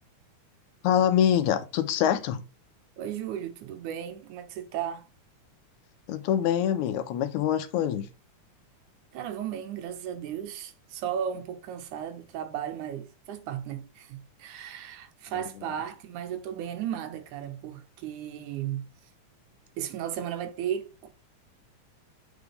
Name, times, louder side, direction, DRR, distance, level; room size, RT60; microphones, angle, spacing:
voice 1, 0.8-2.4 6.1-8.1 15.3-15.4, left 10 dB, 85° left, 2.2 m, -25 dB
voice 2, 3.0-5.1 9.1-18.9 19.8-21.1, right 9 dB, 85° right, 2.4 m, -35 dB
8.3 x 4.4 x 3.5 m
omnidirectional pair, 3.4 m